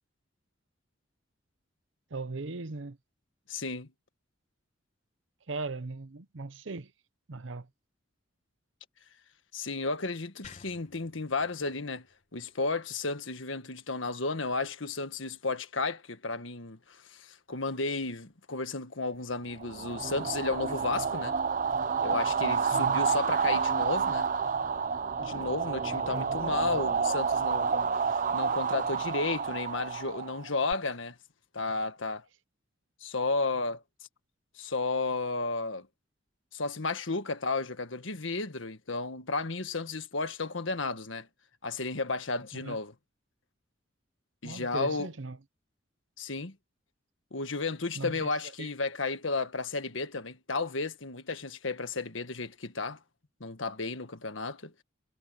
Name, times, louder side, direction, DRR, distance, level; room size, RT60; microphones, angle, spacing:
voice 1, 2.1-3.0 5.5-6.9 7.3-7.7 22.7-23.0 26.1-26.2 42.6-42.8 44.4-45.4 47.9-48.3, right 3 dB, 75° right, 0.8 m, -38 dB
voice 2, 3.5-3.9 9.5-12.1 12.3-21.4 22.0-24.3 25.2-31.2 31.5-32.2 33.0-33.8 34.5-35.9 36.5-41.3 41.6-42.9 44.4-45.1 46.2-46.5 47.3-53.0 53.4-54.8, left 3 dB, 80° left, 1.6 m, -33 dB
sound 1, 10.4-13.6, left 5 dB, 35° left, 1.3 m, -55 dB
sound 2, 19.6-30.7, right 6 dB, 40° right, 0.5 m, -29 dB
head